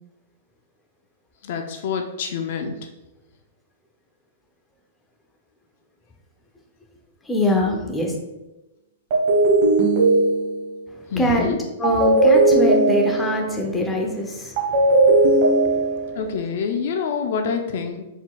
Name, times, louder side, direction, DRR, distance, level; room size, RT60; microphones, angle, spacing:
voice 1, 1.4-2.8 11.1-11.6 16.2-18.1, left 6 dB, 60° left, 5 dB, 0.5 m, -26 dB
voice 2, 7.3-8.1 11.1-14.5 15.1-15.2, left 1 dB, 10° left, 1 dB, 0.7 m, -23 dB
sound 1, 9.1-10.8 11.8-13.5 14.6-16.3, right 2 dB, 50° right, 1.3 m, -18 dB
4.4 x 3.8 x 2.4 m, 1.0 s
hypercardioid pair, 140°, 0 cm